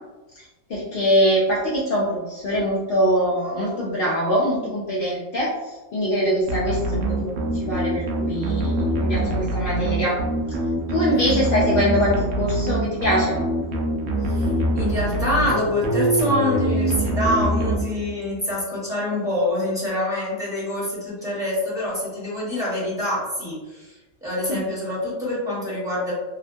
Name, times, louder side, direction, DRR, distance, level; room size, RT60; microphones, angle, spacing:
voice 1, 0.7-5.5 5.9-10.2 10.9-13.4 24.5-24.6, equal, 80° left, -6 dB, 0.4 m, -23 dB
sound 1, 6.5-18.3, right 1 dB, 70° right, 0.8 m, -24 dB
voice 2, 14.2-26.1, left 1 dB, 5° right, -9 dB, 0.8 m, -26 dB
2.7 x 2.2 x 2.6 m, 1.1 s
omnidirectional pair, 1.5 m